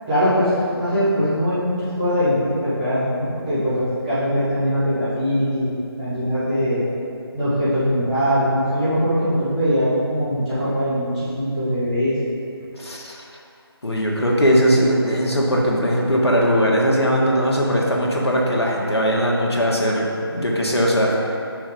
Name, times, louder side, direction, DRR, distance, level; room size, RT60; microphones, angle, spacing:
voice 1, 0.1-6.8 7.3-12.2, equal, 15° right, -13 dB, 1.5 m, -21 dB
voice 2, 12.8-13.1 13.8-21.1, equal, 80° left, -3 dB, 1.6 m, -19 dB
6.1 x 5.6 x 5.3 m, 2.5 s
figure-of-eight pair, 160°, 14 cm